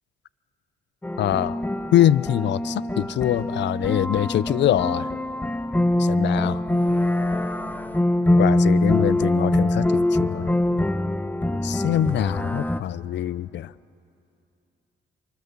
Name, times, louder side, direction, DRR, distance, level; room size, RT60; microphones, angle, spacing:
sound 1, 1.0-12.8, left 1 dB, 10° left, 0.9 m, -23 dB
voice 1, 1.2-1.6 1.9-5.1 6.0-6.6 8.4-10.5 11.6-13.7, left 12 dB, 65° left, 19 dB, 0.6 m, -23 dB
28.5 x 24.5 x 7.1 m, 2.6 s
cardioid pair, 90°, 20 cm